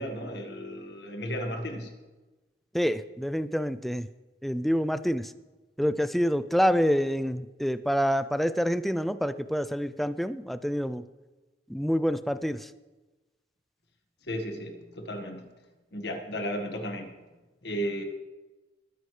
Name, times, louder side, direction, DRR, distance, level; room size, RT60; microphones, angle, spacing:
voice 1, 0.0-1.9 14.2-15.5 15.9-17.2 17.6-18.0, equal, 65° left, 5 dB, 1.6 m, -34 dB
voice 2, 2.7-4.1 4.4-5.3 5.8-11.1 11.7-12.7, equal, ahead, 12 dB, 0.3 m, -27 dB
20.0 x 9.7 x 3.2 m, 1.2 s
head